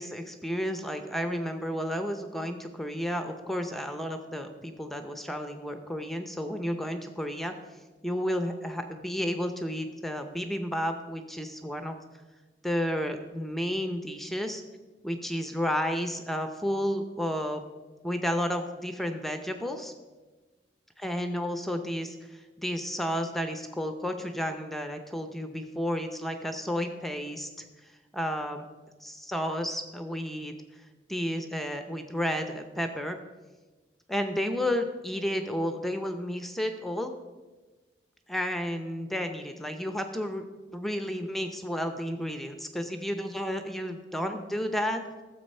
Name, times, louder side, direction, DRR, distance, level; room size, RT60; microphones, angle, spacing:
voice 1, 0.0-7.5 8.0-12.0 12.6-14.6 15.0-17.6 18.0-19.9 21.0-28.6 29.0-30.8 31.1-33.2 34.1-37.1 38.3-40.4 40.7-45.0, equal, ahead, 7 dB, 0.6 m, -32 dB
13.5 x 7.6 x 5.4 m, 1.3 s
head